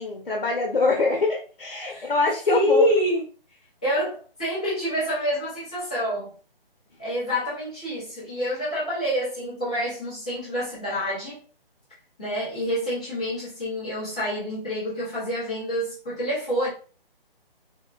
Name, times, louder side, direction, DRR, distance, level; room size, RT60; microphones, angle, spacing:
voice 1, 0.0-2.9, left 3 dB, 60° left, 0.8 m, -24 dB
voice 2, 2.5-3.2 3.8-6.3 7.0-11.4 12.2-16.7, equal, 10° left, 0.5 m, -27 dB
3.6 x 2.1 x 2.3 m
figure-of-eight pair, 145°, 30 cm